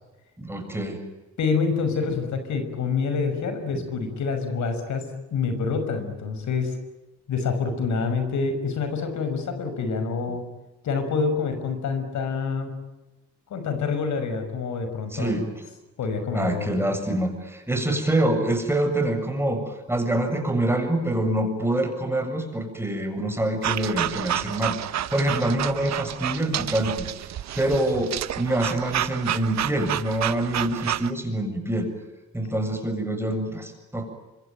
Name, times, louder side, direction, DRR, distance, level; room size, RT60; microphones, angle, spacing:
voice 1, 0.4-1.0 2.1-2.2 15.1-15.4 16.3-24.8 25.1-27.1 27.6-31.9 32.3-34.1, right 1 dB, 10° right, 5 dB, 7.5 m, -25 dB
voice 2, 1.4-6.8 7.3-10.4 10.8-12.7 13.5-15.4 16.0-16.7, left 5 dB, 70° left, 8 dB, 5.9 m, -27 dB
sound 1, 23.6-31.1, right 11 dB, 60° right, 1.0 m, -30 dB
25.5 x 25.0 x 9.2 m, 1.1 s
cardioid pair, 90°, 30 cm